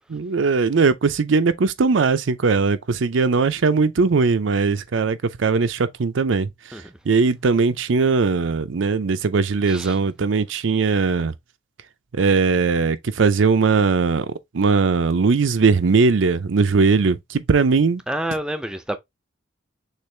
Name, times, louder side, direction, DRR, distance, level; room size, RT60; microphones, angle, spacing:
voice 1, 0.1-6.5 7.1-11.3 12.1-18.0, right 4 dB, 90° right, 0.5 m, -19 dB
voice 2, 18.1-19.0, right 1 dB, 5° right, 0.5 m, -28 dB
6.6 x 2.5 x 3.2 m
head